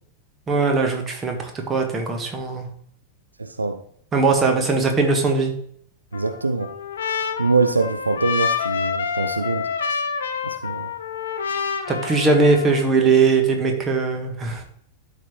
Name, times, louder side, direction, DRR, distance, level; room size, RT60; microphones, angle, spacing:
voice 1, 0.5-2.7 4.1-5.5 11.9-14.6, right 4 dB, 20° right, 3 dB, 1.4 m, -20 dB
voice 2, 3.4-3.8 6.1-6.7 7.4-9.7 10.4-10.9, right 3 dB, 80° right, 8 dB, 0.4 m, -23 dB
Trumpet, 6.1-12.9, left 6 dB, 65° left, 0.6 m, -28 dB
12.0 x 3.9 x 3.0 m, 0.63 s
figure-of-eight pair, 90°, 0 cm